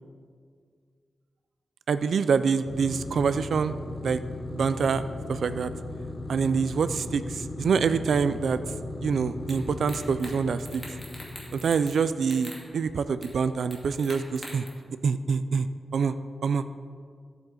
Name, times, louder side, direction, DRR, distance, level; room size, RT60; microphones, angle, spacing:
voice 1, 1.9-4.2 4.5-5.0 5.3-5.7 6.3-8.6 9.0-10.8 11.5-14.6 15.0-15.7 15.9-16.1 16.4-16.6, right 5 dB, 70° right, 12 dB, 0.4 m, -26 dB
sound 1, 2.7-12.5, left 2 dB, 45° left, 0.7 m, -37 dB
sound 2, 9.5-9.6 9.9-10.3 10.6-12.0 12.2-12.6 13.2-13.3 13.7-14.7, left 1 dB, 10° left, 2.2 m, -43 dB
13.5 x 7.9 x 3.9 m, 2.1 s
wide cardioid pair, 145°, 0 cm